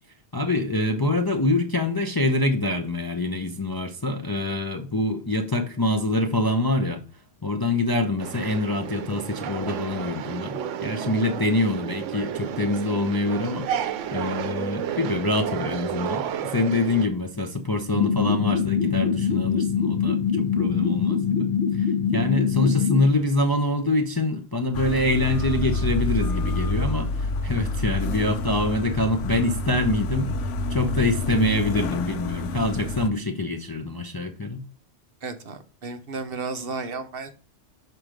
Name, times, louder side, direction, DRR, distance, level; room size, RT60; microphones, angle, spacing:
voice 1, 0.3-7.0 7.4-34.6, left 2 dB, 25° left, 0.5 m, -25 dB
sound 1, 8.2-17.1, right 9 dB, 85° right, 1.0 m, -31 dB
sound 2, 17.9-23.0, left 7 dB, 55° left, 1.4 m, -23 dB
sound 3, 24.7-33.1, left 2 dB, 80° left, 1.0 m, -28 dB
voice 2, 35.2-37.4, right 4 dB, 55° right, 0.9 m, -33 dB
6.5 x 4.6 x 4.9 m
omnidirectional pair, 1.2 m